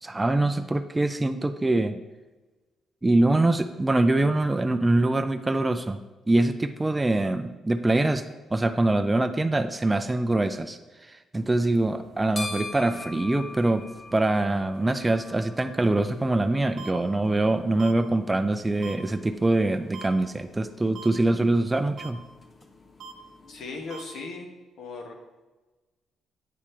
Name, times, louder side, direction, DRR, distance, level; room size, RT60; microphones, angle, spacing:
voice 1, 0.0-2.0 3.0-6.0 6.3-8.2 8.5-10.8 11.1-13.8 14.1-22.2, right 2 dB, 15° right, 8 dB, 0.3 m, -24 dB
sound 1, 11.4-23.9, left 3 dB, 30° left, 0.7 m, -44 dB
sound 2, 16.8-16.9 17.8-17.9 18.8-18.9 19.9-20.1 20.9-21.1 22.0-22.1 23.0-23.1 23.9-24.0, right 6 dB, 65° right, 0.7 m, -40 dB
voice 2, 23.5-24.5 24.8-25.2, left 3 dB, 70° left, 1 dB, 1.2 m, -37 dB
8.5 x 3.4 x 4.3 m, 1.2 s
cardioid pair, 90°, 0 cm